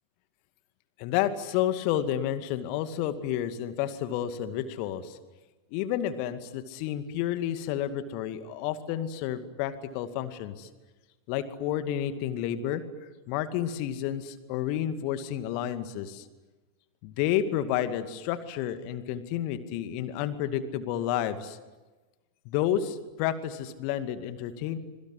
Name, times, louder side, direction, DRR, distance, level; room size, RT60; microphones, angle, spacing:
voice 1, 1.0-5.2 5.7-10.7 11.3-12.8 13.3-16.3 17.0-21.6 22.5-24.8, left 11 dB, 45° left, 10 dB, 2.2 m, -30 dB
26.5 x 23.5 x 9.7 m, 1.2 s
figure-of-eight pair, 90°, 0 cm